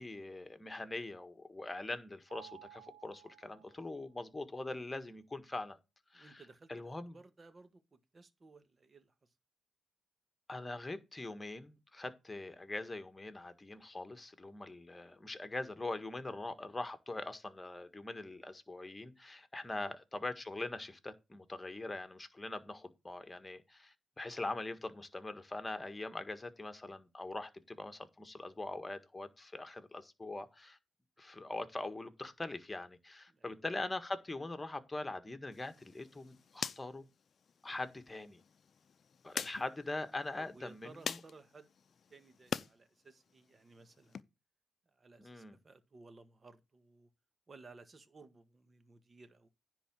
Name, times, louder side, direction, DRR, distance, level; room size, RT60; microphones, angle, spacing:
voice 1, 0.0-5.8 6.1-6.4 6.7-7.2 10.5-30.8 31.2-37.0 37.6-38.4 39.2-41.2 45.2-45.6, left 2 dB, 20° left, 1.6 m, -42 dB
Mallet percussion, 2.3-4.3, right 13 dB, 90° right, 1.4 m, -57 dB
voice 2, 6.1-9.1 19.6-19.9 33.3-33.6 39.3-39.5 40.3-41.7 42.1-44.2 44.9-47.1 47.5-49.5, right 3 dB, 35° right, 1.6 m, -58 dB
sound 1, 35.5-42.7 43.1-44.2, left 6 dB, 55° left, 0.6 m, -45 dB
10.0 x 3.9 x 7.5 m
supercardioid pair, 55°, 0 cm